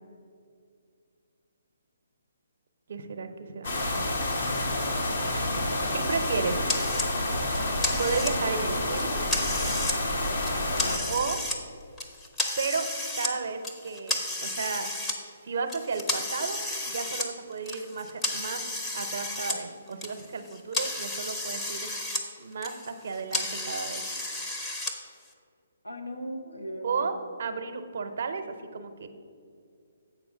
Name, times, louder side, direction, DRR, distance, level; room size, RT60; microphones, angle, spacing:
voice 1, 2.9-3.7 5.5-6.7 8.0-9.3 11.1-11.4 12.6-12.9 13.2-14.9 15.4-18.6 18.9-21.9 22.4-24.0 26.8-27.1 27.4-28.4 28.7-29.1, right 5 dB, 55° right, 8 dB, 0.7 m, -33 dB
sound 1, 3.6-11.0, left 1 dB, 55° left, 1.4 m, -29 dB
voice 2, 5.7-6.0 10.8-11.2 25.8-27.1, equal, 85° left, 3 dB, 1.2 m, -39 dB
sound 2, 6.7-7.1 7.5-8.6 9.0-10.0 10.3-11.6 12.0-13.3 13.6-15.1 15.7-19.6 19.9-22.2 22.5-24.9, left 1 dB, 10° left, 0.8 m, -32 dB
7.7 x 4.8 x 6.3 m, 2.3 s
figure-of-eight pair, 135°, 0 cm